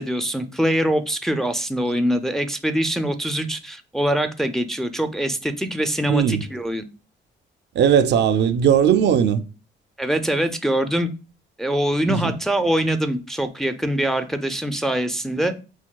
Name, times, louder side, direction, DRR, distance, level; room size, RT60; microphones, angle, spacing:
voice 1, 0.0-6.8 10.0-11.1 11.6-15.5, right 1 dB, ahead, 0.4 m, -23 dB
voice 2, 6.1-6.5 7.7-9.4 12.0-12.3, right 8 dB, 60° right, 0.4 m, -18 dB
5.8 x 2.3 x 2.2 m
cardioid pair, 90°, 20 cm